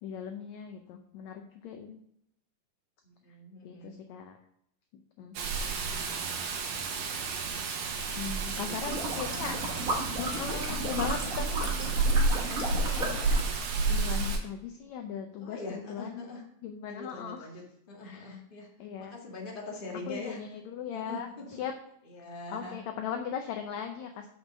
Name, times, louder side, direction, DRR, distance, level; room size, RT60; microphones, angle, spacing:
voice 1, 0.0-2.0 3.6-4.4 4.9-5.4 8.1-9.6 10.2-13.3 13.9-16.2 16.6-17.5 18.0-18.4 18.8-19.1 20.1-21.7 22.5-24.3, left 7 dB, 80° left, 5 dB, 1.6 m, -39 dB
voice 2, 3.0-4.0 7.9-8.8 9.3-9.5 15.4-16.4 16.9-17.6 17.9-18.7 19.0-20.4 20.9-21.5 22.1-22.8, left 2 dB, 20° left, -2 dB, 1.5 m, -43 dB
Rain, 5.4-14.4, right 3 dB, 80° right, 2.9 m, -31 dB
sound 1, 8.8-13.6, right 1 dB, 50° right, 1.0 m, -35 dB
7.0 x 6.1 x 6.4 m, 0.74 s
omnidirectional pair, 4.0 m